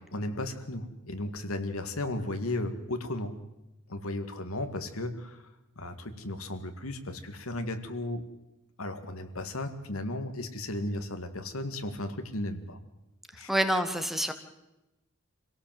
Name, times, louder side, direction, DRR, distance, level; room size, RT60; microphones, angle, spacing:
voice 1, 0.1-3.4 3.9-5.5 5.8-8.2 8.8-12.8 13.3-13.5, left 1 dB, 80° left, 7 dB, 2.2 m, -35 dB
voice 2, 13.5-14.3, equal, ahead, 8 dB, 1.4 m, -27 dB
26.0 x 17.5 x 7.8 m, 0.97 s
head